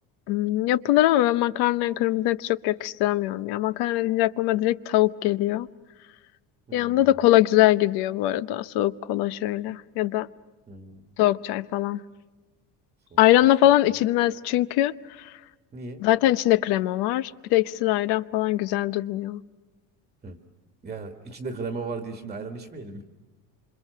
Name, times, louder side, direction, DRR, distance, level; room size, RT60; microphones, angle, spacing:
voice 1, 0.3-5.7 6.7-10.3 11.2-12.0 13.2-15.3 16.0-19.4, left 15 dB, 75° left, 16 dB, 0.9 m, -22 dB
voice 2, 6.7-7.2 10.7-11.1 13.1-13.2 13.6-13.7 15.7-16.0 20.2-20.4 20.8-23.0, right 3 dB, 15° right, 6 dB, 1.4 m, -36 dB
27.0 x 26.5 x 6.7 m, 1.2 s
cardioid pair, 175°, 39 cm